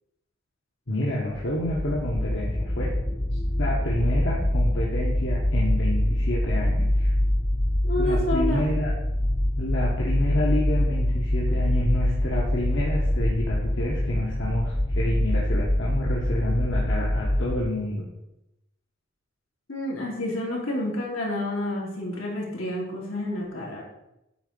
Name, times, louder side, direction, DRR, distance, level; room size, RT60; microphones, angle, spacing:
voice 1, 0.9-2.9 3.6-7.1 7.9-8.9 9.6-18.1, left 1 dB, 65° left, -4 dB, 1.4 m, -29 dB
sound 1, 1.3-17.7, left 1 dB, 10° left, 0.4 m, -25 dB
voice 2, 7.8-8.6 15.0-15.1 19.7-23.8, left 1 dB, 85° left, -3 dB, 2.9 m, -29 dB
9.0 x 3.9 x 6.8 m, 0.90 s
head